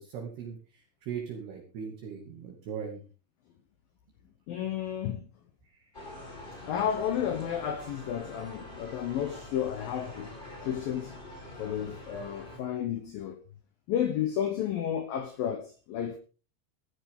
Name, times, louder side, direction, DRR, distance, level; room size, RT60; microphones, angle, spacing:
voice 1, 0.0-3.0 5.8-5.9, right 7 dB, 60° right, 4.0 m, -39 dB
voice 2, 4.5-5.3 6.7-10.3 10.6-11.2 11.6-13.4 13.9-16.2, left 9 dB, 90° left, 2.0 m, -32 dB
sound 1, 5.9-12.6, left 1 dB, 10° left, 4.0 m, -45 dB
16.0 x 14.5 x 3.7 m
omnidirectional pair, 5.7 m